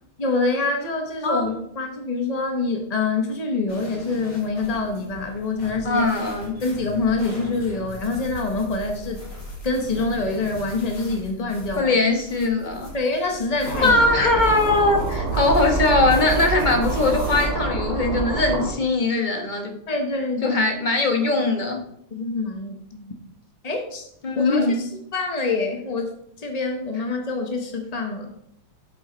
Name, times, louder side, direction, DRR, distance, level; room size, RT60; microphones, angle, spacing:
voice 1, 0.2-6.0 6.6-9.2 9.6-11.9 12.9-13.9 19.9-20.7 22.1-23.1 23.6-24.1 24.3-28.3, left 3 dB, 50° left, 3 dB, 0.4 m, -26 dB
sound 1, 3.7-17.4, equal, 80° left, 4.2 m, -39 dB
voice 2, 5.8-6.5 11.8-12.9 13.8-19.7 20.4-21.8 24.2-24.8, left 2 dB, 30° left, 3 dB, 1.0 m, -21 dB
sound 2, 13.6-18.7, right 2 dB, 75° right, 2.9 m, -26 dB
8.7 x 7.6 x 3.8 m, 0.71 s
omnidirectional pair, 2.3 m